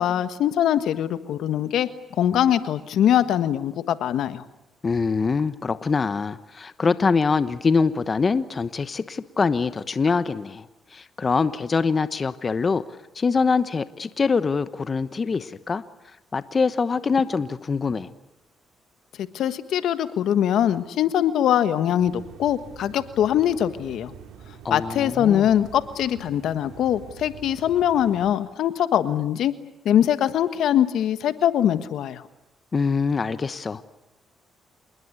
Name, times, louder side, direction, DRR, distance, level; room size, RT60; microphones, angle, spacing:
voice 1, 0.0-4.4 19.3-24.1 24.7-29.5 29.8-32.2, left 10 dB, 75° left, 11 dB, 1.4 m, -22 dB
voice 2, 4.8-10.7 10.9-12.8 13.1-15.8 16.3-18.1 24.6-25.5 32.7-33.9, left 4 dB, 35° left, 13 dB, 1.1 m, -24 dB
sound 1, 22.0-28.3, right 8 dB, 90° right, 2.7 m, -45 dB
27.0 x 20.5 x 9.7 m, 0.93 s
cardioid pair, 90°, 0 cm